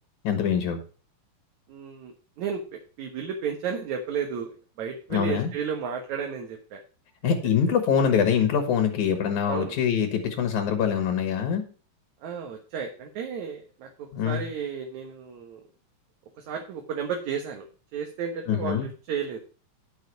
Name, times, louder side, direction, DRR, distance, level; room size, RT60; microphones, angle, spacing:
voice 1, 0.2-0.8 5.1-5.5 7.2-11.6 14.1-14.4 18.5-18.9, left 7 dB, 85° left, 5 dB, 2.9 m, -24 dB
voice 2, 1.7-4.5 4.8-6.8 7.2-7.3 9.4-9.8 12.2-15.6 16.4-19.4, right 6 dB, 75° right, 2 dB, 2.7 m, -33 dB
11.0 x 6.6 x 4.6 m, 0.37 s
omnidirectional pair, 3.3 m